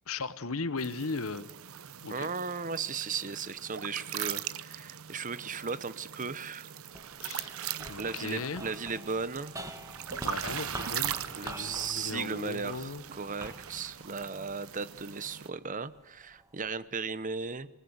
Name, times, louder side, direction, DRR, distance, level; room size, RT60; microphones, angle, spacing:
voice 1, 0.1-1.5 2.0-2.3 7.2-7.5 7.9-8.6 10.2-13.0, left 3 dB, 80° left, 15 dB, 1.2 m, -37 dB
sound 1, 0.8-15.5, right 10 dB, 80° right, 0.8 m, -40 dB
voice 2, 2.1-6.7 8.0-9.5 11.4-17.7, right 5 dB, 40° right, 16 dB, 0.9 m, -36 dB
sound 2, 6.9-15.3 15.9-16.7, right 1 dB, 15° right, 1.9 m, -46 dB
27.5 x 19.5 x 8.1 m, 0.85 s
head